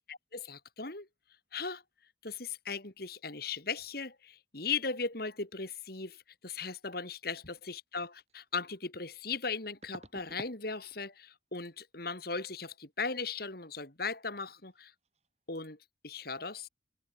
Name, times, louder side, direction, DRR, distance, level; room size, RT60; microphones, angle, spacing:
voice 1, 0.1-1.1 1.5-1.8 2.2-14.9 15.5-15.8 16.0-16.7, left 4 dB, 50° left, 2.9 m, -38 dB
sound 1, 8.3-8.4 9.8-10.6 10.9-11.3 11.5-11.7 14.7-14.8 15.0-15.3 15.5-15.7, right 1 dB, 35° right, 3.4 m, -50 dB
open air
head